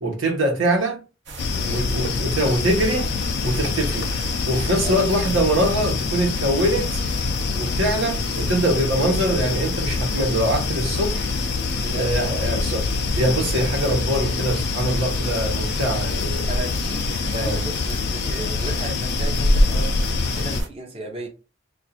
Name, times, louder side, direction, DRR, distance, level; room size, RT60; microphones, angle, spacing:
voice 1, 0.0-1.0 1.7-3.1 3.4-4.1 4.5-7.0 7.6-11.3 11.9-12.8 13.2-16.5 17.3-17.6, right 1 dB, 80° right, 1.0 m, -23 dB
sound 1, 1.3-20.7, right 2 dB, 60° right, 0.8 m, -35 dB
sound 2, 1.4-20.6, left 4 dB, 55° left, 0.4 m, -25 dB
voice 2, 1.5-1.8 2.8-2.9 3.6-3.9 4.8-5.0 7.4-7.7 11.8-12.5 16.5-21.3, right 2 dB, 30° right, 0.7 m, -35 dB
2.5 x 2.4 x 4.1 m
head